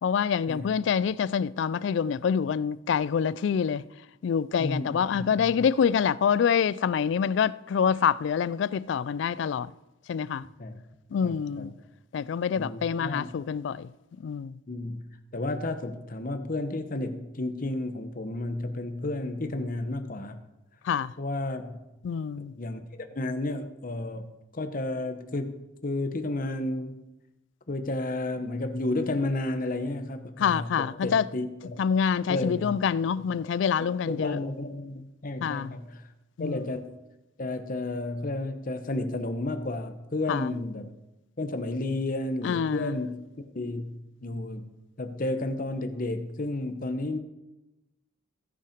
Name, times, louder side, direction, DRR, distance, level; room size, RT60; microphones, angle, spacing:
voice 1, 0.0-3.8 4.2-9.7 10.1-10.5 11.1-11.7 12.1-13.9 14.2-14.6 20.9-21.1 22.0-22.5 30.4-31.3 31.8-34.4 35.4-35.7 36.4-36.6 40.3-40.5 42.4-42.9, left 7 dB, 60° left, 0.3 m, -26 dB
voice 2, 4.6-5.7 10.6-10.8 11.2-11.7 12.5-13.3 14.7-15.0 15.3-20.4 21.2-21.8 22.6-24.3 24.5-27.0 27.7-31.8 32.3-32.8 33.8-36.0 36.4-36.9 37.4-40.9 41.4-43.2 43.5-44.7 45.0-47.2, left 2 dB, 45° left, 0.9 m, -32 dB
16.5 x 5.6 x 5.1 m
head